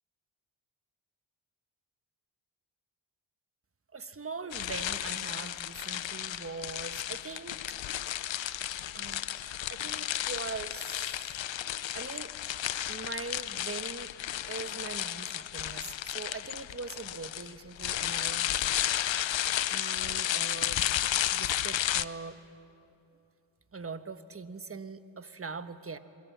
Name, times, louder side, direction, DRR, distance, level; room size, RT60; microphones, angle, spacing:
voice 1, 3.9-7.8 8.3-8.7 8.9-11.4 11.9-12.3 12.9-14.1 14.5-18.9 19.7-20.8 21.3-22.4 23.7-26.0, right 4 dB, 30° right, 10 dB, 1.2 m, -42 dB
sound 1, 4.5-22.0, left 12 dB, 75° left, 0.7 m, -33 dB
28.5 x 22.0 x 7.4 m, 2.8 s
cardioid pair, 70°, 46 cm